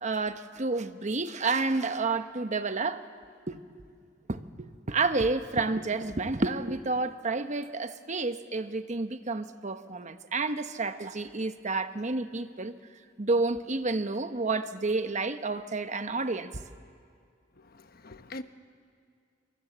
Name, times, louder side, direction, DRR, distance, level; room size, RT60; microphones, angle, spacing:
voice 1, 0.0-3.0 3.5-3.6 4.3-12.8 13.2-16.6, right 3 dB, 40° right, 1.0 m, -30 dB
voice 2, 17.5-18.4, left 2 dB, 50° left, 1.1 m, -43 dB
26.5 x 26.0 x 8.0 m
head